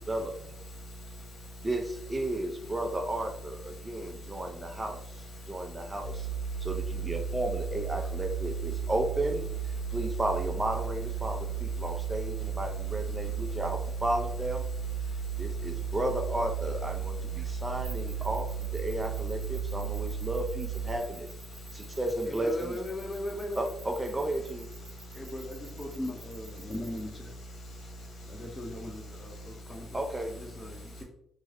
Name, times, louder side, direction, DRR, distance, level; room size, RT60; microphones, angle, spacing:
voice 1, 0.1-0.5 1.6-5.0 5.5-6.3 6.6-9.4 9.9-14.6 15.4-21.3 21.7-22.8 23.6-24.6 29.9-30.3, right 1 dB, 20° right, 0.4 m, -33 dB
voice 2, 5.9-6.6 7.7-8.1 8.4-9.0 9.7-9.8 11.1-11.5 12.4-12.5 12.8-13.8 14.8-14.9 16.3-16.4 17.5-17.6 18.2-18.3 21.2-21.4 21.8-21.9 23.2-23.3 23.6-23.8 24.0-26.0 26.4-29.5 30.1-30.2 30.6-30.8, equal, 65° left, 1.3 m, -45 dB
sound 1, 6.0-21.0, right 7 dB, 90° right, 1.3 m, -34 dB
sound 2, 17.8-27.0, right 4 dB, 55° right, 1.1 m, -51 dB
voice 3, 22.3-23.6 25.1-27.3 28.2-31.0, left 1 dB, 15° left, 0.7 m, -39 dB
3.3 x 2.0 x 3.6 m
cardioid pair, 90°, 0 cm